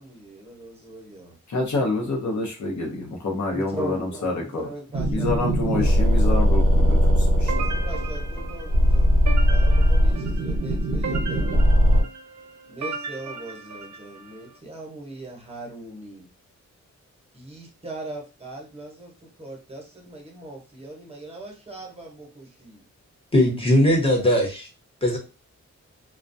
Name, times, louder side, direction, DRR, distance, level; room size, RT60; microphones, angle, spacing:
voice 1, 0.0-1.4 2.0-2.1 3.5-5.9 7.5-11.7 12.7-16.3 17.3-22.8, right 2 dB, 20° right, 0.9 m, -40 dB
voice 2, 1.5-4.6 5.1-7.7, left 2 dB, 70° left, 0.8 m, -27 dB
sound 1, 4.9-12.0, equal, 50° right, 0.8 m, -20 dB
sound 2, 7.5-14.4, right 4 dB, 65° right, 0.4 m, -36 dB
voice 3, 23.3-24.7 25.0-25.2, left 1 dB, 20° left, 0.9 m, -19 dB
2.2 x 2.2 x 2.6 m
wide cardioid pair, 110°, 30 cm